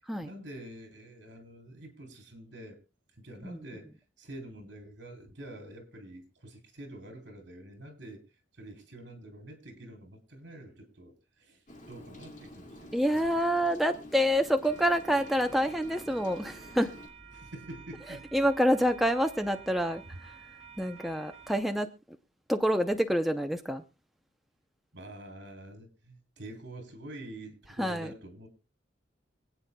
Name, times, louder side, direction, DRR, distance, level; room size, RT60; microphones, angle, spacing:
voice 1, 0.2-2.8 3.1-8.2 8.5-13.4 17.3-18.3 24.9-28.5, right 1 dB, 60° right, 3.6 m, -47 dB
Rain, 11.7-17.1, left 1 dB, 40° left, 2.1 m, -49 dB
voice 2, 12.9-16.9 18.3-20.3 20.8-21.9 22.5-23.8 27.8-28.1, equal, ahead, 0.6 m, -27 dB
sound 1, 14.6-21.6, right 6 dB, 35° right, 2.8 m, -51 dB
25.5 x 8.9 x 2.2 m
head